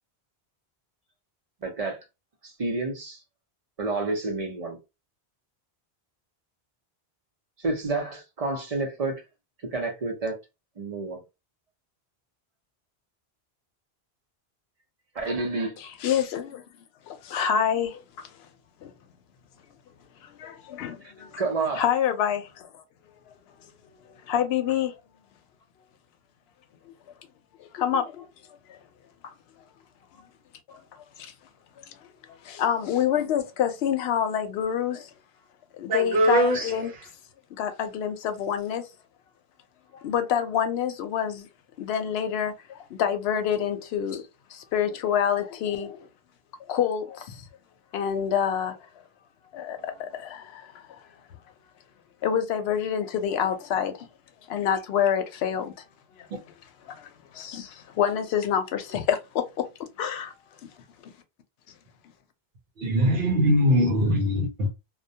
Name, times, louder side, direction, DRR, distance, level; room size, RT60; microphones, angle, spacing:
voice 1, 1.6-2.0 2.4-3.2 3.8-4.8 7.6-9.2 9.6-10.4 10.8-11.2 15.1-15.8 21.4-21.8, right 3 dB, 40° right, 0.7 m, -29 dB
voice 2, 15.8-16.6 17.1-18.3 18.8-18.9 20.2-21.4 21.8-22.7 24.0-24.9 26.9-27.0 27.6-28.3 28.7-28.8 29.2-29.3 30.7-30.8 31.2-31.3 31.9-32.0 32.3-35.1 35.8-36.9 37.6-38.9 39.9-41.5 41.8-44.2 44.5-46.1 46.7-47.4 47.9-48.8 49.5-51.0 52.2-54.1 54.5-55.7 56.2-56.3 56.8-59.4 60.0-60.3, left 8 dB, 75° left, 0.8 m, -27 dB
voice 3, 35.9-36.7 62.8-64.7, equal, 70° right, 0.8 m, -21 dB
2.2 x 2.2 x 2.6 m
omnidirectional pair, 1.1 m